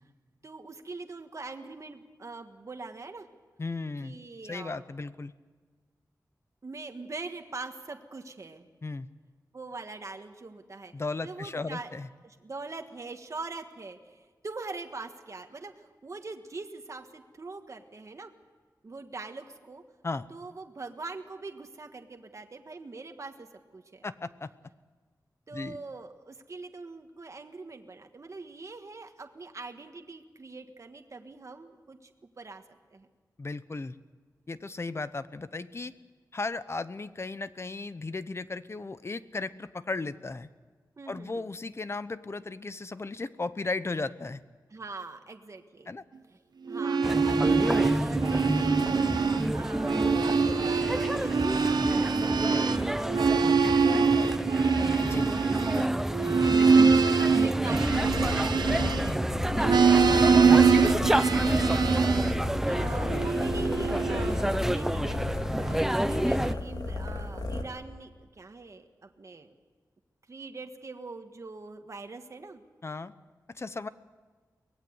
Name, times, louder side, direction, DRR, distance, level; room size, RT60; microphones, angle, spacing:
voice 1, 0.4-3.3 4.0-4.8 6.6-8.7 9.5-10.9 11.2-11.9 12.2-18.3 18.8-19.8 20.3-23.5 23.7-24.0 25.5-32.6 32.9-33.1 41.0-41.5 44.7-45.9 46.7-49.9 50.2-54.0 56.2-57.0 57.3-58.5 59.5-69.5 70.3-72.6, right 3 dB, 45° right, 5 dB, 1.6 m, -43 dB
voice 2, 3.6-4.1 4.5-5.3 8.8-9.1 10.9-12.1 20.0-20.3 24.0-24.5 25.5-25.8 33.4-34.0 34.5-35.9 36.3-40.5 41.1-44.4 45.9-46.0 55.0-55.3 58.8-59.1 72.8-73.1 73.5-73.9, left 3 dB, 40° left, 13 dB, 0.9 m, -35 dB
sound 1, 46.7-49.5 49.8-59.3 59.6-62.4 63.0-64.3, right 5 dB, 90° right, 1.0 m, -24 dB
sound 2, 47.0-66.5, right 1 dB, 5° right, 0.7 m, -29 dB
sound 3, 57.7-67.6, left 2 dB, 70° left, 2.5 m, -34 dB
24.0 x 18.5 x 8.1 m, 1.5 s
wide cardioid pair, 115°, 7 cm